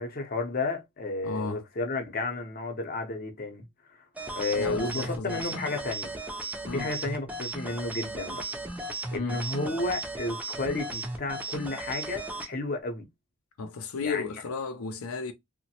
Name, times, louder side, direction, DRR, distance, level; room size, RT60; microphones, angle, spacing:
voice 1, 0.0-3.6 4.3-6.2 6.7-8.4 9.1-13.0 14.0-14.3, left 2 dB, 40° left, 0.6 m, -32 dB
voice 2, 1.2-1.6 4.5-5.6 6.6-6.9 9.1-9.4 13.6-15.3, left 4 dB, 80° left, 0.5 m, -34 dB
sound 1, 4.1-12.5, right 2 dB, 5° right, 0.4 m, -36 dB
3.0 x 2.1 x 2.8 m
head